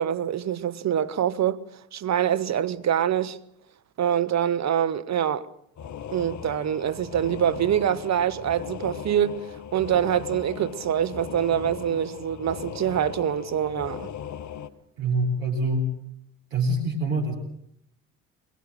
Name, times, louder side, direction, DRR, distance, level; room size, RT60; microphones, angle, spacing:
voice 1, 0.0-1.6 1.9-3.4 4.0-5.5 6.1-9.5 9.7-14.1, right 10 dB, 45° right, 1.3 m, -25 dB
sound 1, 5.8-14.7, left 8 dB, 45° left, 1.3 m, -38 dB
voice 2, 15.0-15.9 16.5-17.3, right 1 dB, 80° right, 4.1 m, -25 dB
23.5 x 21.0 x 7.5 m
hypercardioid pair, 60°, 39 cm